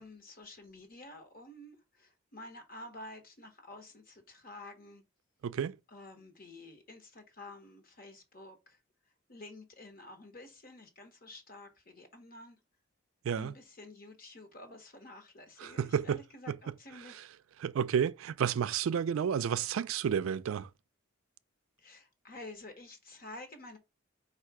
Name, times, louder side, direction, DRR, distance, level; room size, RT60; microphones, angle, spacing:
voice 1, 0.0-5.0 5.9-8.8 9.3-12.6 13.3-17.2 21.8-23.8, left 2 dB, 45° left, 1.0 m, -50 dB
voice 2, 5.4-5.7 13.2-13.5 15.6-16.2 16.5-16.6 17.6-20.7, right 8 dB, 80° right, 0.3 m, -31 dB
4.6 x 2.4 x 4.6 m
head